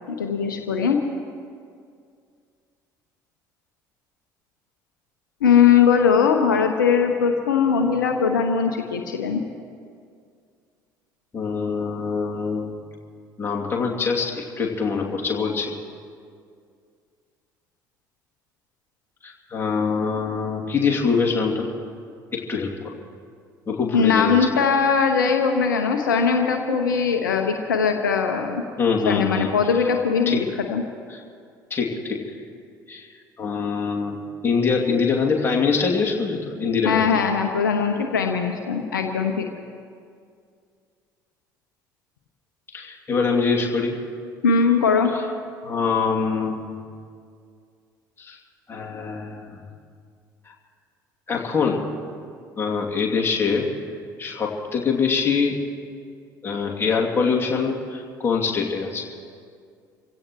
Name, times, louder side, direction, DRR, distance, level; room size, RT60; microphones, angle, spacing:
voice 1, 0.1-1.0 5.4-9.4 23.9-28.6 29.0-30.8 36.8-39.5 44.4-45.1, left 6 dB, 75° left, 5 dB, 0.9 m, -20 dB
voice 2, 11.3-12.7 13.4-15.7 19.2-21.7 22.3-23.0 23.7-24.5 28.8-29.9 30.3-30.4 31.1-31.2 31.7-32.2 32.9-33.1 33.4-37.1 42.7-44.0 45.6-46.7 48.2-48.4 48.7-49.6 50.5-50.6 51.3-51.8 52.6-53.7 54.2-55.6 56.4-59.1, left 5 dB, 20° left, -1 dB, 2.6 m, -24 dB
26.5 x 16.5 x 3.1 m, 2.2 s
figure-of-eight pair, 60°, 11 cm